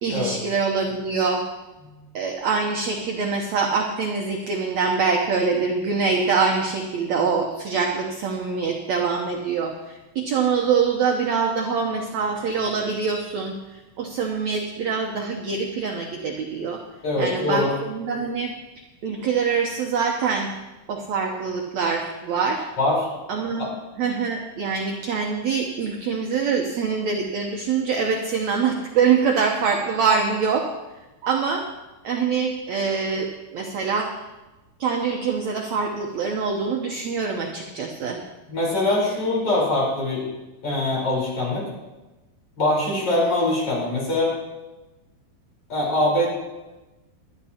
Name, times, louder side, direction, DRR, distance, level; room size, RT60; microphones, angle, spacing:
voice 1, 0.0-1.4 2.1-13.6 14.0-16.8 17.2-18.5 19.0-20.5 20.9-22.6 23.3-23.7 24.0-30.7 31.2-31.6 32.0-34.1 34.8-38.2, right 5 dB, 80° right, 1 dB, 1.6 m, -24 dB
voice 2, 17.0-17.7 22.8-23.1 23.6-23.7 38.5-40.2 40.6-41.6 42.6-44.3 45.7-46.3, left 1 dB, 35° left, -5 dB, 5.1 m, -23 dB
20.5 x 12.0 x 2.9 m, 1.1 s
omnidirectional pair, 4.5 m